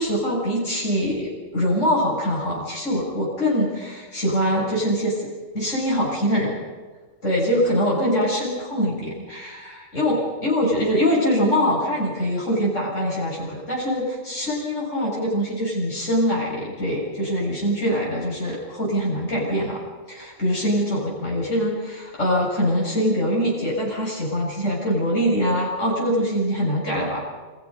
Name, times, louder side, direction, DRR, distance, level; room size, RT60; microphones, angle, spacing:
voice 1, 0.0-5.3 5.5-6.6 7.2-19.8 20.1-27.2, equal, 75° left, -4 dB, 7.7 m, -23 dB
30.0 x 25.5 x 5.4 m, 1.4 s
omnidirectional pair, 1.3 m